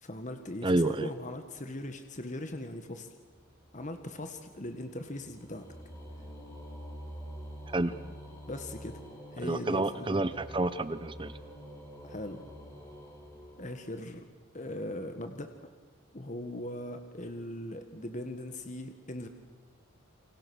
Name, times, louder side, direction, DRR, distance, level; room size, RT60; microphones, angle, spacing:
voice 1, 0.0-3.1 3.7-5.6 8.5-9.0 9.3-10.2 12.0-12.4 13.6-14.2 14.5-15.7 16.1-19.3, left 1 dB, 35° left, 7 dB, 1.6 m, -40 dB
voice 2, 0.6-1.1 7.7-7.9 9.4-11.3, right 2 dB, 25° right, 14 dB, 0.7 m, -29 dB
sound 1, 3.3-14.2, equal, 15° left, 4.8 m, -47 dB
29.0 x 25.0 x 6.3 m, 1.3 s
head